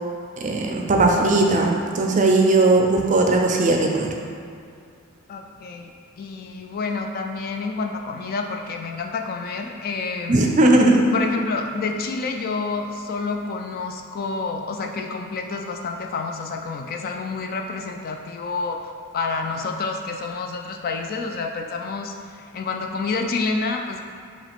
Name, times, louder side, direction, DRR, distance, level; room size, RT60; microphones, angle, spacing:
voice 1, 0.4-4.1 10.3-11.0, right 2 dB, 35° right, 1 dB, 0.5 m, -18 dB
voice 2, 5.3-5.9 6.2-10.6 11.1-18.8 19.1-24.1, left 4 dB, 45° left, 3 dB, 0.3 m, -28 dB
4.9 x 2.9 x 3.5 m, 2.4 s
head